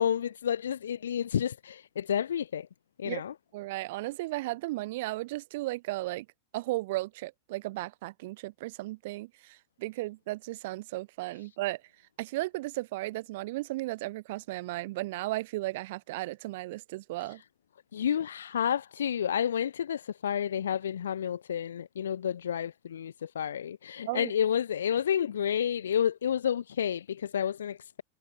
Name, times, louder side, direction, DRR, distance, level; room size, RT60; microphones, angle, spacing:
voice 1, 0.0-2.7 3.0-3.3 17.3-17.4 17.9-28.0, left 9 dB, 65° left, 1.0 m, -30 dB
voice 2, 3.5-6.2 6.5-11.8 12.2-17.4 24.1-24.3, right 19 dB, 50° right, 1.6 m, -35 dB
figure-of-eight pair, 90°, 0 cm